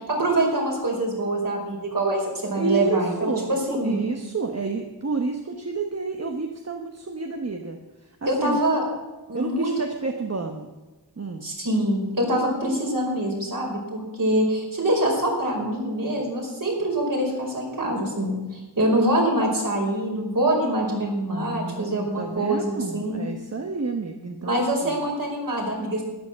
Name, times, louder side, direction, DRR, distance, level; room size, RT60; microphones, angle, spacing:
voice 1, 0.1-4.1 8.3-8.8 9.3-9.7 11.4-23.2 24.4-26.0, right 1 dB, 55° right, -1 dB, 5.3 m, -25 dB
voice 2, 2.5-8.6 9.3-10.7 11.2-11.4 21.3-25.0, right 4 dB, 35° right, 3 dB, 1.2 m, -30 dB
13.0 x 10.5 x 7.5 m, 1.2 s
wide cardioid pair, 100°, 41 cm